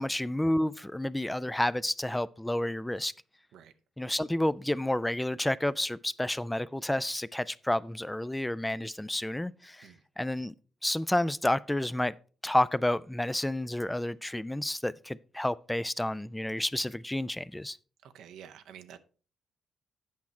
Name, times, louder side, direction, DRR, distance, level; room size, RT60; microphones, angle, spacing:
voice 1, 0.0-3.1 4.0-9.9 10.2-10.5 10.8-12.1 12.4-17.8, left 1 dB, 10° left, 0.3 m, -30 dB
voice 2, 18.0-19.0, right 9 dB, 80° right, 0.6 m, -49 dB
8.4 x 5.9 x 4.3 m
cardioid pair, 90°, 0 cm